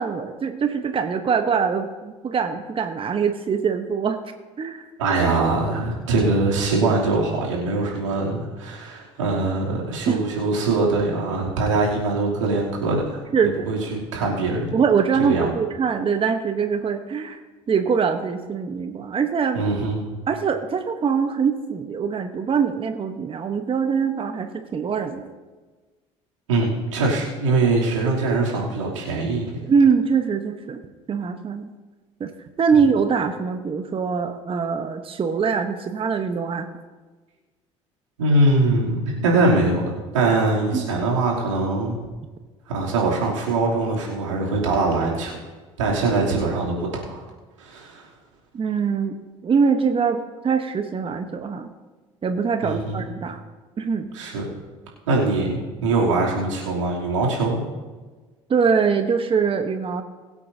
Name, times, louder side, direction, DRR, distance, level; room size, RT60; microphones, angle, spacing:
voice 1, 0.0-4.2 4.6-4.8 10.1-10.2 13.3-13.5 14.7-17.4 17.7-19.6 20.3-25.3 29.7-30.8 31.1-31.7 32.2-32.3 32.6-36.7 40.7-40.9 48.5-49.1 49.4-51.7 52.2-53.4 53.8-54.1 58.5-60.0, right 6 dB, 35° right, 7 dB, 1.0 m, -23 dB
voice 2, 5.0-13.2 13.7-14.7 15.2-15.5 19.5-20.0 26.5-29.6 38.2-42.0 42.7-45.3 45.8-47.2 47.6-48.0 52.6-53.1 54.1-54.5 55.1-57.6, right 2 dB, 85° right, -4 dB, 2.9 m, -22 dB
22.5 x 8.5 x 2.8 m, 1.3 s
hypercardioid pair, 60°, 16 cm